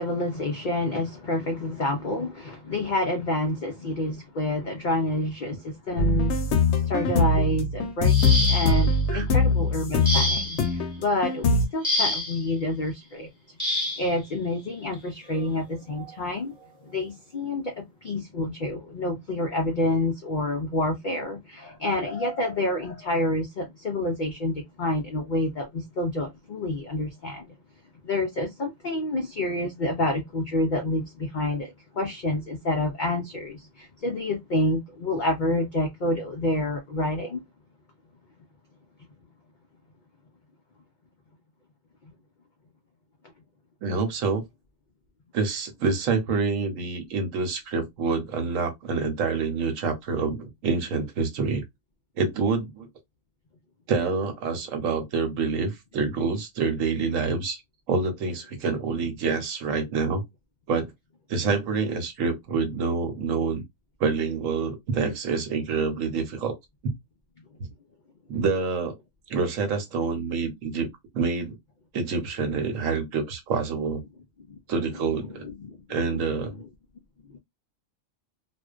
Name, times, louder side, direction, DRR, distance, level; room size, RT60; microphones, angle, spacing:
voice 1, 0.0-6.5 6.9-8.2 8.4-13.3 13.8-16.6 16.8-27.5 28.0-37.4 74.5-74.6 75.4-76.2 76.6-76.7 77.3-77.4, left 1 dB, 80° left, 0.4 m, -28 dB
sound 1, 6.0-11.7, left 3 dB, 65° left, 0.8 m, -22 dB
sound 2, 8.1-8.9 10.0-10.7 11.8-12.4 13.6-14.1 15.3-15.4 15.9-16.1, equal, 5° right, 0.9 m, -27 dB
voice 2, 43.8-44.4 45.3-51.6 52.2-52.9 53.9-57.6 57.9-60.2 60.7-60.9 61.3-63.6 64.0-66.5 66.8-66.9 67.6-67.7 68.3-69.0 69.3-70.9 71.1-71.6 71.9-74.0 74.7-75.5 75.9-76.5, right 4 dB, 75° right, 1.1 m, -27 dB
2.4 x 2.1 x 2.3 m
omnidirectional pair, 1.4 m